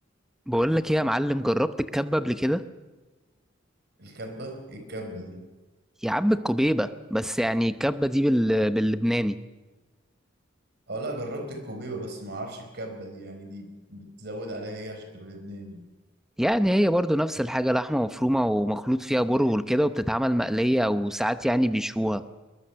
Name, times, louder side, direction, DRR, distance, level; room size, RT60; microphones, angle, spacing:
voice 1, 0.5-2.6 6.0-9.4 16.4-22.2, equal, ahead, 11 dB, 0.8 m, -24 dB
voice 2, 4.0-5.4 10.9-15.8, right 1 dB, 55° right, 6 dB, 4.5 m, -37 dB
22.0 x 21.5 x 6.9 m, 1.2 s
head